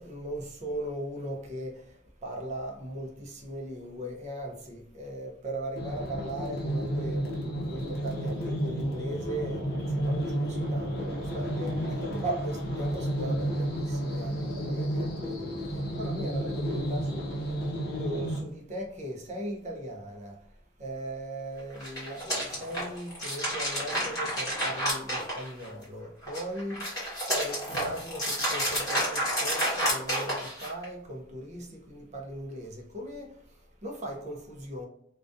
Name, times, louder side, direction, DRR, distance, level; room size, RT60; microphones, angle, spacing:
voice 1, 0.0-17.7 17.9-20.5 20.8-26.9 27.3-34.9, right 1 dB, 35° right, 0.5 m, -38 dB
sound 1, 5.7-18.4, right 1 dB, 50° left, 0.6 m, -31 dB
sound 2, 21.7-25.8 26.2-30.8, equal, 15° left, 1.1 m, -30 dB
2.4 x 2.2 x 2.5 m
head